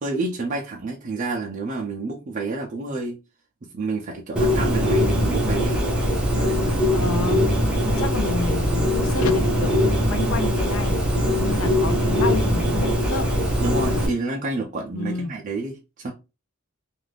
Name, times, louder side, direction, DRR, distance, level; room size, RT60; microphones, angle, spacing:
voice 1, 0.0-3.2 3.7-5.8 6.4-6.7 13.6-16.1, right 3 dB, 40° right, 0.4 m, -29 dB
Bird, 4.4-14.1, equal, 5° right, 0.7 m, -21 dB
voice 2, 6.9-7.4 7.8-13.3 15.0-15.4, left 4 dB, 70° left, 0.5 m, -30 dB
2.5 x 2.4 x 3.2 m
head